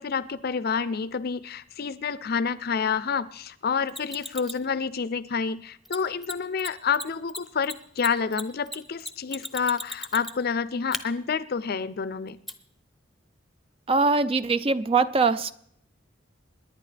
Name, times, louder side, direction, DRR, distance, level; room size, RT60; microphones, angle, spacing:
voice 1, 0.0-12.4, left 6 dB, 55° left, 15 dB, 0.5 m, -28 dB
Mechanisms, 3.9-4.6 5.8-6.0 6.2-6.3 6.6-6.7 6.9-10.5 10.9-11.0 12.5-12.6, left 1 dB, ahead, 0.8 m, -35 dB
voice 2, 13.9-15.5, right 4 dB, 30° right, 14 dB, 0.4 m, -22 dB
27.0 x 10.5 x 3.4 m, 0.70 s
head